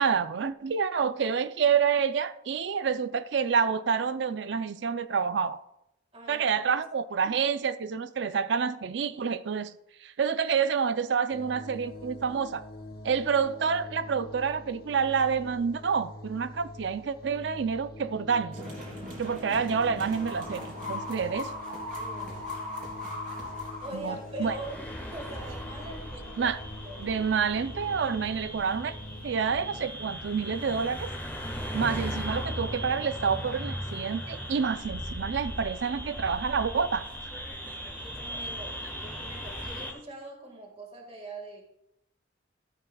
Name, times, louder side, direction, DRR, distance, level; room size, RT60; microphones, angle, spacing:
voice 1, 0.0-5.6 6.3-9.7 10.0-12.6 13.0-18.6 19.2-21.5 23.9-24.6 26.4-26.6 27.0-28.9 29.2-31.1 31.7-37.0, right 6 dB, 65° right, 0.4 m, -28 dB
voice 2, 6.1-6.5 7.2-7.3 22.0-22.5 23.8-26.5 26.8-27.1 38.0-41.6, right 1 dB, 30° right, 1.7 m, -43 dB
sound 1, 11.3-29.8, left 1 dB, 50° left, 1.2 m, -45 dB
sound 2, 18.5-24.5, left 1 dB, 45° right, 3.1 m, -39 dB
sound 3, 24.4-39.9, equal, 10° left, 1.4 m, -38 dB
14.0 x 8.1 x 2.3 m
head